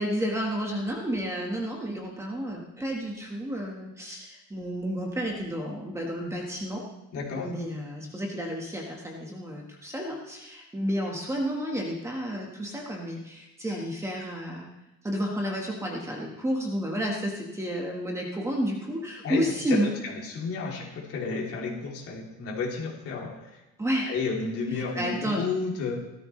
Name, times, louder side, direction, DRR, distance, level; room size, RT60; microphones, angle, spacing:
voice 1, 0.0-6.8 7.4-14.7 15.0-19.9 23.8-24.1 24.7-25.5, equal, 10° right, -1 dB, 1.5 m, -31 dB
voice 2, 7.1-7.5 19.2-23.3 24.0-26.0, left 4 dB, 50° left, -1 dB, 3.1 m, -32 dB
17.0 x 14.0 x 3.3 m, 0.97 s
cardioid pair, 170°, 29 cm